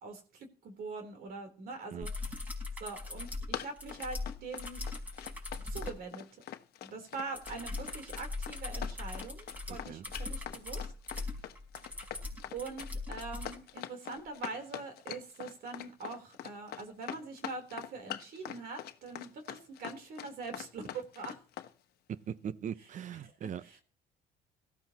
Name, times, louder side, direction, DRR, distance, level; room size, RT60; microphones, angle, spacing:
voice 1, 0.0-4.8 5.6-6.4 6.8-11.4 12.5-20.8 21.2-21.4 22.8-23.8, right 3 dB, 65° right, 3.7 m, -44 dB
sound 1, 2.0-6.0 7.3-13.6 15.3-15.4, left 3 dB, 10° right, 5.3 m, -40 dB
Run, 3.0-21.7, left 11 dB, 65° left, 1.2 m, -43 dB
voice 2, 9.7-10.0 22.1-23.6, right 8 dB, 45° right, 0.7 m, -40 dB
18.0 x 14.0 x 3.0 m
cardioid pair, 110°, 17 cm